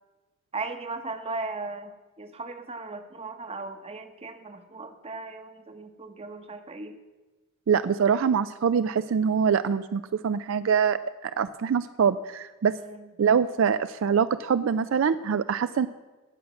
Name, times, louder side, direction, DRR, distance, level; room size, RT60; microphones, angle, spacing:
voice 1, 0.5-7.0 12.7-13.1, right 3 dB, 30° right, 8 dB, 0.9 m, -37 dB
voice 2, 7.7-12.8 13.2-15.9, right 6 dB, 65° right, 13 dB, 0.4 m, -24 dB
17.5 x 6.4 x 6.0 m, 1.2 s
head